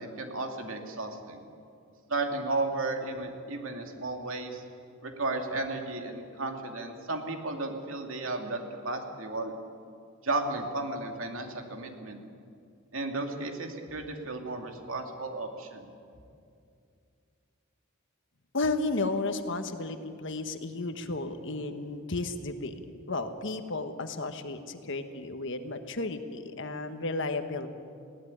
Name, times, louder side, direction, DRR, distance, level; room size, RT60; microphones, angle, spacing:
voice 1, 0.0-1.4 2.1-4.6 5.0-9.5 10.2-12.2 12.9-15.8, right 2 dB, 70° right, 3 dB, 2.6 m, -34 dB
voice 2, 18.5-22.8 23.1-27.7, left 3 dB, 60° left, 8 dB, 1.4 m, -33 dB
20.5 x 17.0 x 10.0 m, 2.4 s
head